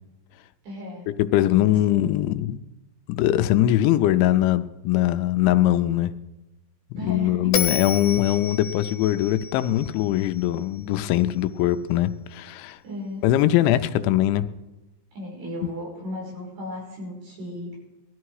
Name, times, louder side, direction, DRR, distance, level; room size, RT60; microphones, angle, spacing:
voice 1, 0.6-1.1 1.5-2.1 7.0-7.8 12.8-13.3 15.1-17.8, left 1 dB, 55° right, -2 dB, 7.0 m, -36 dB
voice 2, 1.2-2.6 3.1-6.1 7.0-12.8 13.2-14.5, left 13 dB, 85° left, 11 dB, 3.0 m, -21 dB
Bell, 7.5-10.8, left 8 dB, 60° left, 2.4 m, -30 dB
19.5 x 13.0 x 4.8 m, 1.0 s
omnidirectional pair, 5.4 m